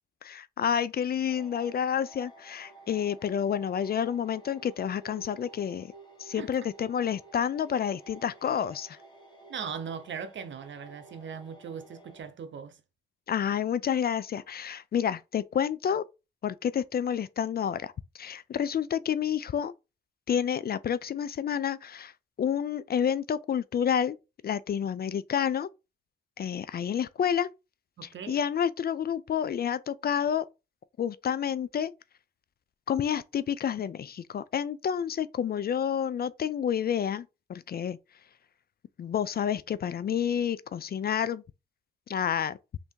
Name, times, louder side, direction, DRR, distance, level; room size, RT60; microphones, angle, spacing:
voice 1, 0.2-5.9 6.2-9.0 13.3-16.0 16.4-19.7 20.3-22.1 22.4-24.2 24.4-25.7 26.4-27.5 28.0-30.5 31.0-31.9 32.9-38.0 39.0-41.4 42.1-42.6, left 8 dB, 50° left, 0.4 m, -29 dB
sound 1, 1.3-12.2, right 3 dB, 20° left, 1.5 m, -52 dB
voice 2, 9.5-12.8 28.0-28.4, right 6 dB, 60° right, 0.8 m, -39 dB
3.3 x 2.7 x 4.5 m
supercardioid pair, 55°, 21 cm